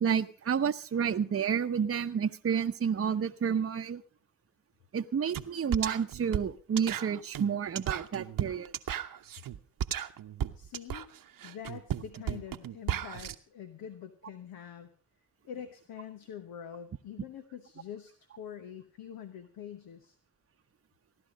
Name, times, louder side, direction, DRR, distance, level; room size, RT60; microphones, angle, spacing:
voice 1, 0.0-4.0 4.9-8.7, right 7 dB, 40° right, 8 dB, 0.8 m, -30 dB
sound 1, 5.3-5.5 5.7-13.3, right 10 dB, 65° right, 0.9 m, -35 dB
voice 2, 10.5-11.1 11.4-14.9 15.4-20.2, left 9 dB, 75° left, 9 dB, 1.1 m, -45 dB
16.0 x 11.0 x 5.1 m, 0.41 s
supercardioid pair, 45°, 36 cm